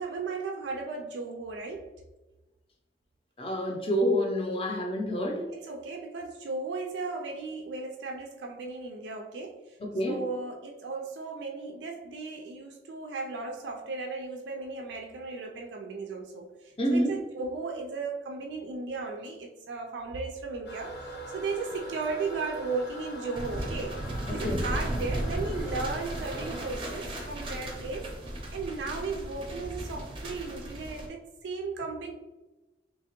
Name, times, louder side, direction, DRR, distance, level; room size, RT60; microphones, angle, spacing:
voice 1, 0.0-1.9 5.2-9.8 10.1-24.0 24.3-28.2 28.5-32.1, right 3 dB, 85° right, 2 dB, 0.4 m, -36 dB
voice 2, 3.4-5.5 9.9-10.2 16.8-17.1 24.4-24.6, equal, 30° left, 2 dB, 0.5 m, -27 dB
Toilet flush, 20.7-26.7, right 1 dB, 80° left, 0.8 m, -42 dB
sound 1, 23.3-31.1, right 1 dB, 30° right, 0.5 m, -35 dB
3.3 x 2.8 x 2.9 m, 1.1 s
head